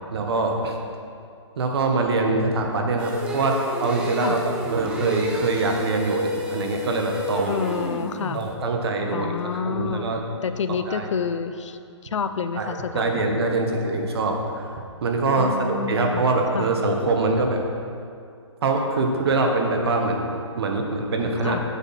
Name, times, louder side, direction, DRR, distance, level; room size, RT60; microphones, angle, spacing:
voice 1, 0.1-0.8 1.6-4.4 4.6-7.6 8.3-9.3 9.6-10.2 10.9-11.0 12.6-14.7 15.0-17.6 18.6-21.6, right 3 dB, 55° right, 3 dB, 1.2 m, -24 dB
sound 1, 3.0-8.6, equal, 5° right, 0.4 m, -31 dB
voice 2, 7.5-8.4 9.1-10.1 10.4-11.8 12.1-13.3 15.4-16.3 16.5-16.7 21.4-21.6, left 6 dB, 80° left, 10 dB, 0.5 m, -28 dB
7.1 x 7.0 x 4.2 m, 2.4 s
hypercardioid pair, 160°, 15 cm